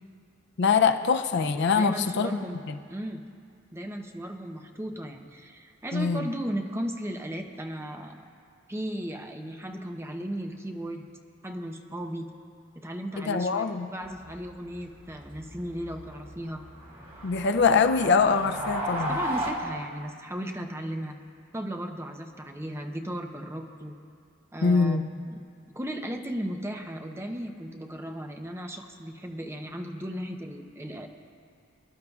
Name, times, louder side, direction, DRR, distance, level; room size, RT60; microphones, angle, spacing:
voice 1, 0.6-2.3 2.7-2.8 5.9-6.3 13.2-13.9 17.2-19.2 24.6-25.0, left 5 dB, 60° left, 9 dB, 0.5 m, -23 dB
voice 2, 1.8-2.6 2.9-3.2 3.7-8.2 8.7-11.1 11.4-12.3 12.7-13.6 13.9-16.6 18.9-21.2 21.5-24.0 24.5-25.4 25.7-31.1, equal, 15° right, 4 dB, 0.7 m, -36 dB
sound 1, 14.0-19.5, right 1 dB, 45° right, 2.3 m, -36 dB
24.0 x 11.5 x 2.4 m, 2.2 s
head